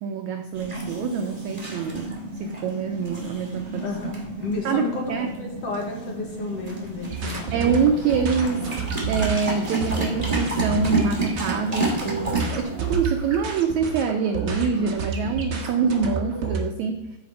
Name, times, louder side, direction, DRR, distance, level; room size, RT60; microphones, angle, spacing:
voice 1, 0.0-2.1 2.4-3.9 4.6-5.3 7.5-17.1, right 6 dB, 85° right, 5 dB, 1.6 m, -25 dB
sound 1, 0.5-12.6, right 2 dB, 15° right, 1.7 m, -31 dB
voice 2, 4.4-7.6, left 4 dB, 55° left, 0 dB, 1.9 m, -32 dB
sound 2, 7.1-16.6, right 4 dB, 55° right, 1.2 m, -30 dB
sound 3, 7.7-13.6, left 7 dB, 85° left, 2.5 m, -45 dB
14.5 x 5.1 x 4.8 m, 0.97 s
omnidirectional pair, 4.1 m